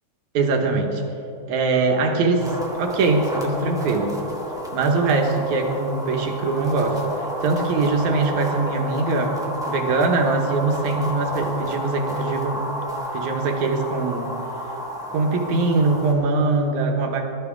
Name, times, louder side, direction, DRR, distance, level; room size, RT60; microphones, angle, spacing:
voice 1, 0.3-1.0 1.5-4.2 4.7-9.4 9.7-12.6 13.1-14.4 15.1-17.3, right 3 dB, 75° right, 3 dB, 2.6 m, -22 dB
sound 1, 2.4-16.1, equal, ahead, 0.8 m, -31 dB
19.5 x 12.5 x 3.6 m, 2.9 s
omnidirectional pair, 3.4 m